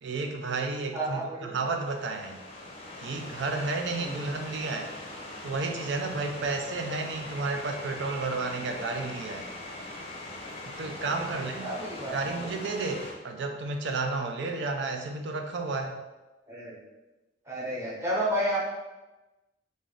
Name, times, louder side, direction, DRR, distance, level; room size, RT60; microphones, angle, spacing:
voice 1, 0.0-2.4 3.0-4.9 5.4-9.5 10.8-11.8 12.1-16.0, right 3 dB, 65° right, 5 dB, 0.4 m, -32 dB
voice 2, 0.9-1.6 4.0-4.4 11.0-11.1 11.6-12.5 16.5-16.8 17.5-18.6, right 1 dB, 15° right, -6 dB, 0.9 m, -31 dB
sound 1, 1.6-13.1, left 2 dB, 30° left, 0.6 m, -41 dB
3.4 x 2.5 x 3.7 m, 1.1 s
head